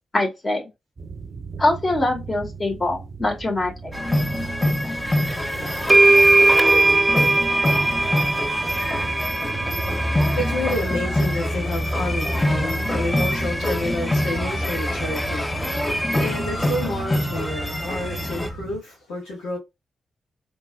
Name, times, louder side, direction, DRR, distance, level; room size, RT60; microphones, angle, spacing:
voice 1, 0.1-0.7 1.6-3.9, left 2 dB, 40° left, 2.4 m, -23 dB
sound 1, 1.0-18.8, right 1 dB, 60° right, 0.7 m, -32 dB
sound 2, 3.9-18.5, left 1 dB, 15° left, 1.0 m, -25 dB
sound 3, 5.3-5.4 5.9-10.7, right 2 dB, 20° right, 0.4 m, -19 dB
voice 2, 9.9-19.6, left 1 dB, 85° left, 1.4 m, -30 dB
4.3 x 3.0 x 2.3 m
hypercardioid pair, 40°, 0 cm